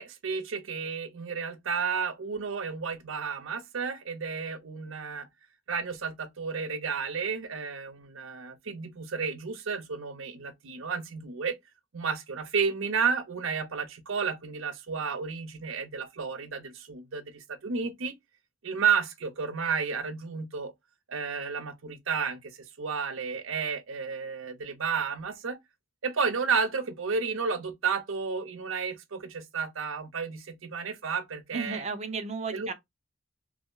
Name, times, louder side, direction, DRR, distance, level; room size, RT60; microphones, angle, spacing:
voice 1, 0.0-5.3 5.7-11.6 11.9-18.2 18.6-20.7 21.1-25.6 26.0-31.8 32.5-32.7, right 5 dB, 85° right, 0.7 m, -32 dB
voice 2, 31.5-32.7, right 4 dB, 35° right, 0.6 m, -33 dB
3.0 x 2.1 x 3.7 m
head